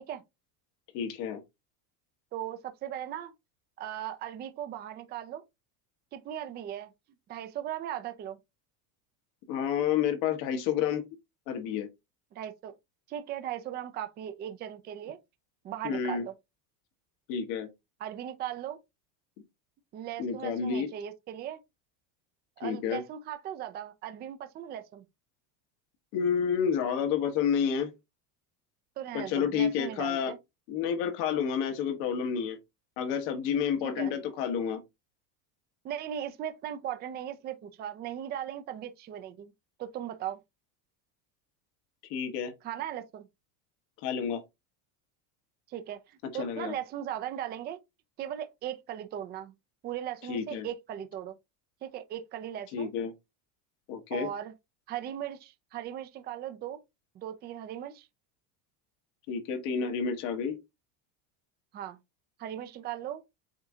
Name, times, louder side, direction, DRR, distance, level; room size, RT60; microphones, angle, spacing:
voice 1, 0.9-1.4 9.5-11.0 11.5-11.9 15.8-16.2 17.3-17.7 20.2-20.9 22.6-23.0 26.1-27.9 29.1-30.3 30.7-32.6 33.0-34.8 42.1-42.5 44.0-44.4 46.3-46.7 50.3-50.7 52.7-53.1 53.9-54.3 59.3-60.6, left 7 dB, 65° left, 1.4 m, -29 dB
voice 2, 2.3-3.3 3.8-5.4 6.1-6.9 7.3-8.4 12.3-12.7 13.1-15.2 15.6-16.3 18.0-18.8 19.9-21.6 22.6-25.0 29.0-30.4 33.8-34.1 35.8-39.5 39.8-40.4 42.6-43.2 45.7-47.8 48.2-49.5 49.8-51.3 51.8-52.9 54.1-54.5 54.9-56.8 57.1-58.1 61.7-62.0 62.4-63.2, right 11 dB, 25° right, 0.4 m, -38 dB
8.0 x 2.7 x 2.4 m
cardioid pair, 145°, 43 cm